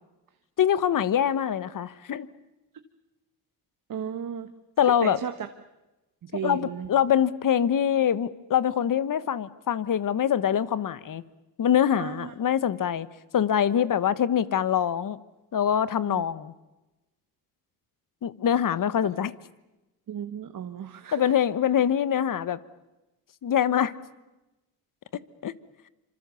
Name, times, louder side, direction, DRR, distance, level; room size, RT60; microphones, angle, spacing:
voice 1, 0.6-2.3 4.8-5.2 6.4-11.2 11.6-13.1 13.3-15.2 15.5-16.5 18.2-19.3 21.1-22.6 23.4-23.9 25.4-25.5, left 9 dB, 55° left, 16 dB, 1.3 m, -24 dB
voice 2, 3.9-4.5 5.0-5.5 6.3-6.9 11.9-12.3 16.1-16.2 20.1-21.3, right 8 dB, 55° right, 7 dB, 1.6 m, -34 dB
26.5 x 26.0 x 7.1 m, 1.0 s
cardioid pair, 75°, 40 cm